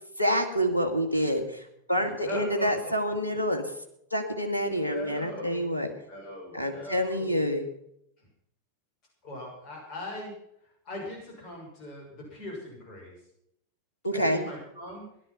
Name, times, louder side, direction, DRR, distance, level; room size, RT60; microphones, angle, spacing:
voice 1, 0.2-3.7 4.1-5.9 6.5-7.7 14.0-14.4, equal, 85° left, 4 dB, 2.2 m, -27 dB
voice 2, 1.9-2.9 4.6-5.6 6.1-7.4 8.2-8.3 9.2-10.3 10.8-13.1 14.1-15.1, left 1 dB, 35° left, -1 dB, 6.3 m, -40 dB
16.5 x 12.0 x 5.8 m, 0.74 s
figure-of-eight pair, 90°, 0 cm